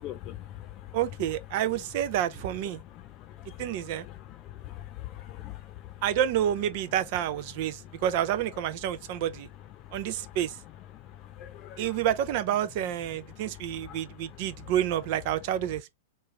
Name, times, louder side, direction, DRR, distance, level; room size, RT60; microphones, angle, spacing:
voice 1, 0.0-1.0 2.9-6.0 7.9-8.0 9.8-10.4 10.9-12.0 13.3-14.7, left 13 dB, 40° left, 0.8 m, -44 dB
voice 2, 0.9-2.8 3.6-4.1 6.0-9.5 9.9-10.6 11.8-15.9, right 11 dB, 50° right, 0.5 m, -29 dB
3.2 x 2.5 x 3.2 m
hypercardioid pair, 120°, 0 cm